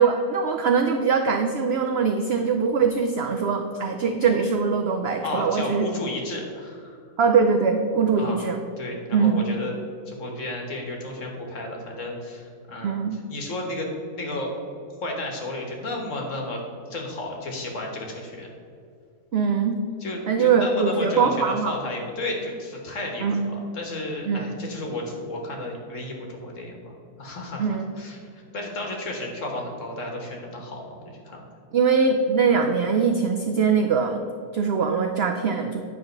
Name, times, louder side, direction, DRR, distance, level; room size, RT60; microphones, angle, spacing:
voice 1, 0.0-5.9 7.2-8.6 9.1-9.4 12.8-13.2 19.3-19.8 20.3-21.7 23.2-23.4 24.3-24.4 27.6-27.8 31.7-34.2 34.5-35.8, right 5 dB, 80° right, 5 dB, 0.5 m, -22 dB
voice 2, 5.2-7.0 8.2-8.4 8.8-9.8 10.1-14.5 15.0-16.6 16.9-18.5 20.0-26.9 27.2-31.4, left 1 dB, 55° left, 1 dB, 1.6 m, -33 dB
9.8 x 3.5 x 6.5 m, 2.3 s
omnidirectional pair, 1.7 m